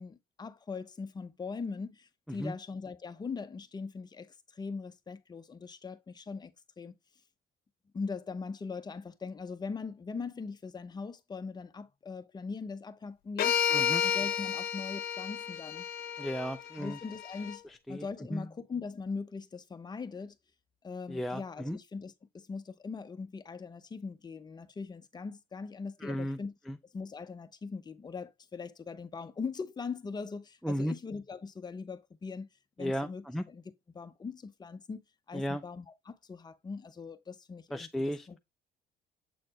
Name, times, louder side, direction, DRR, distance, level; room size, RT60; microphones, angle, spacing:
voice 1, 0.0-7.0 7.9-15.8 16.8-17.6 17.9-20.4 20.8-26.5 26.9-32.5 32.8-35.0 35.3-38.4, left 4 dB, 25° left, 0.7 m, -41 dB
sound 1, 13.4-17.6, left 8 dB, 60° left, 0.8 m, -32 dB
voice 2, 13.7-14.0 16.2-17.0 17.9-18.4 21.1-21.8 26.0-26.4 26.7-26.8 30.6-30.9 32.8-33.4 35.3-35.6 37.7-38.4, equal, ahead, 0.4 m, -34 dB
7.7 x 4.2 x 2.9 m
cardioid pair, 110°, 17 cm